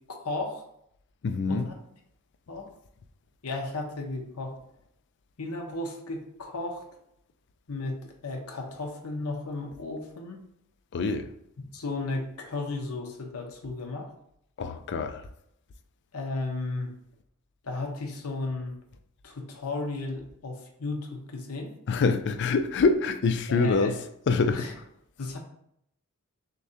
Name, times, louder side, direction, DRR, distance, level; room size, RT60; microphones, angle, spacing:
voice 1, 0.2-0.6 1.5-1.7 2.5-2.7 3.4-4.5 5.4-6.8 7.7-10.4 11.7-14.1 16.1-16.9 17.6-18.8 19.2-21.7 23.5-24.0 24.5-24.7 25.2-25.4, left 2 dB, 80° left, 0.8 m, -34 dB
voice 2, 1.2-1.7 10.9-11.3 14.6-15.3 21.9-24.0 24.3-24.7, left 4 dB, 55° left, 0.4 m, -25 dB
6.5 x 2.3 x 2.7 m
head